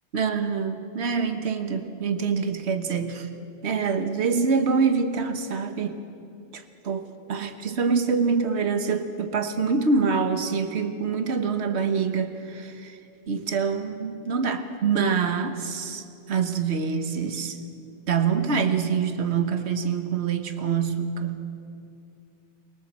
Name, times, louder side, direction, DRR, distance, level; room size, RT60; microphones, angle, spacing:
voice 1, 0.1-3.3 3.6-6.0 6.5-13.0 13.3-17.6 18.1-21.4, right 5 dB, 70° right, 8 dB, 1.5 m, -25 dB
23.5 x 22.0 x 7.5 m, 2.6 s
omnidirectional pair, 1.2 m